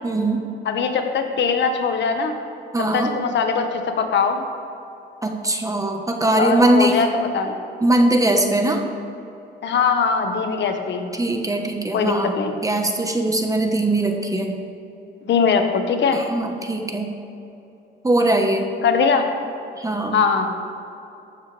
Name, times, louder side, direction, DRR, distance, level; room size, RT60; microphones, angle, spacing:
voice 1, 0.0-0.5 2.7-3.1 5.2-7.0 7.8-8.8 11.1-12.3 12.6-14.5 16.1-17.1 18.0-18.7 19.8-20.2, right 1 dB, 15° right, 3 dB, 1.3 m, -20 dB
voice 2, 0.6-2.4 2.9-4.4 6.4-7.5 9.6-11.1 11.9-12.5 15.2-16.2 18.8-19.3 20.1-20.5, left 5 dB, 65° left, 5 dB, 1.5 m, -21 dB
15.0 x 12.5 x 3.4 m, 2.9 s
cardioid pair, 90°, 20 cm